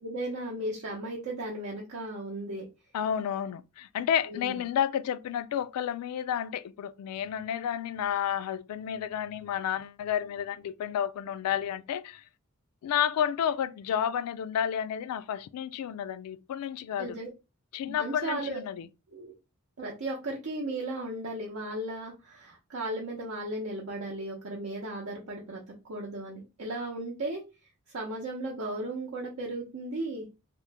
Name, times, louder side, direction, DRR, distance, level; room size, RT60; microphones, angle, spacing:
voice 1, 0.0-2.6 4.3-4.6 17.0-17.3 17.9-18.6 19.1-19.3 19.8-25.6 25.9-27.4 27.9-30.3, right 1 dB, 70° right, 0.7 m, -35 dB
voice 2, 2.9-12.2 12.8-17.2 17.7-18.9, left 9 dB, 90° left, 0.3 m, -31 dB
2.9 x 2.1 x 3.3 m
head